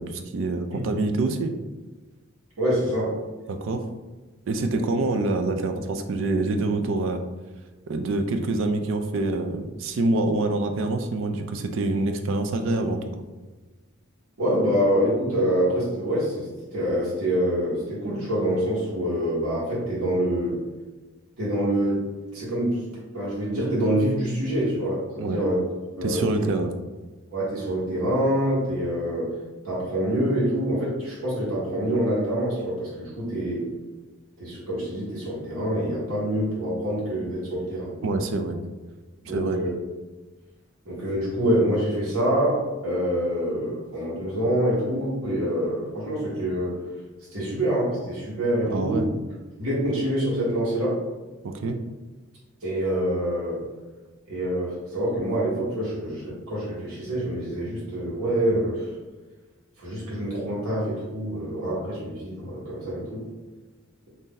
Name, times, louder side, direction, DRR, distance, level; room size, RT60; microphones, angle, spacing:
voice 1, 0.0-1.5 3.5-3.9 4.5-7.2 7.9-13.0 25.2-25.4 26.0-26.7 38.0-38.6 39.3-39.6 48.6-49.1 51.4-51.8, right 2 dB, 60° right, 6 dB, 0.3 m, -26 dB
voice 2, 2.6-3.2 4.7-4.8 14.4-20.6 21.4-22.0 22.3-22.8 23.1-25.6 25.9-26.4 27.3-29.3 29.6-33.7 34.4-37.9 39.2-39.7 40.8-46.8 47.3-49.1 49.6-51.0 52.6-53.6 54.3-58.9 59.8-63.3, equal, 90° right, -7 dB, 1.3 m, -26 dB
2.6 x 2.6 x 3.7 m, 1.2 s
head